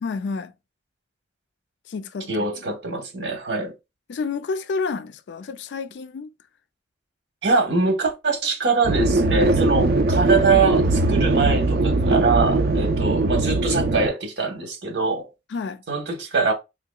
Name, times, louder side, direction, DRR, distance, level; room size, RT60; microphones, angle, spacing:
voice 1, 0.0-0.5 1.9-2.5 4.1-6.3 15.5-15.8, left 4 dB, 85° left, 0.4 m, -29 dB
voice 2, 2.3-3.7 7.4-15.3 15.9-16.5, right 4 dB, 85° right, 1.1 m, -23 dB
sound 1, 8.8-14.1, right 2 dB, 60° right, 0.4 m, -20 dB
4.4 x 2.8 x 2.3 m
head